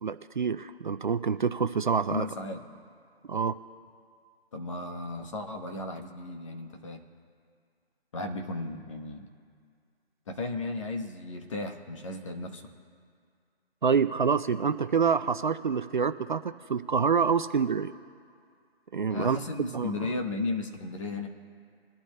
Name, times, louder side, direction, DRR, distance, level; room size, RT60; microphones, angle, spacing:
voice 1, 0.0-2.3 3.3-3.6 13.8-16.4 16.7-17.9 18.9-19.4 19.7-20.1, right 6 dB, 50° right, 12 dB, 0.4 m, -26 dB
voice 2, 2.1-2.6 4.5-7.0 8.1-9.3 10.3-12.6 19.1-21.3, left 2 dB, 30° left, 4 dB, 1.0 m, -35 dB
22.5 x 11.5 x 2.2 m, 2.2 s
figure-of-eight pair, 160°, 31 cm